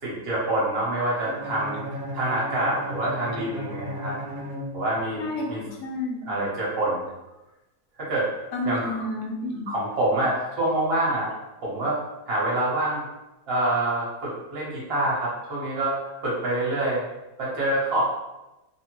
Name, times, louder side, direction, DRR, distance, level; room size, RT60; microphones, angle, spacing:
voice 1, 0.0-1.8 2.1-4.2 4.7-5.6 6.2-7.0 8.1-8.3 8.6-9.0 9.7-11.3 11.6-12.0 12.3-13.0 13.5-16.0 16.2-17.0 17.4-18.0, right 1 dB, 50° right, -6 dB, 1.0 m, -26 dB
Bowed string instrument, 1.2-5.4, equal, 80° right, 1.0 m, -35 dB
voice 2, 5.2-6.4 8.5-9.7, left 1 dB, 80° left, -1 dB, 1.1 m, -31 dB
2.8 x 2.0 x 2.9 m, 1.0 s
omnidirectional pair, 1.6 m